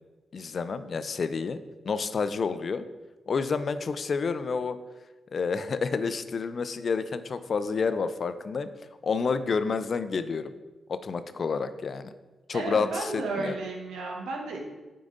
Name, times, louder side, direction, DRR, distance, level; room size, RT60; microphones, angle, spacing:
voice 1, 0.3-1.6 1.8-2.8 3.3-4.8 5.3-8.7 9.0-10.5 10.9-12.1 12.5-13.5, left 5 dB, 55° left, 12 dB, 0.4 m, -29 dB
voice 2, 12.5-14.6, right 3 dB, 80° right, 0 dB, 1.2 m, -33 dB
9.2 x 3.8 x 3.8 m, 1.2 s
hypercardioid pair, 40°, 0 cm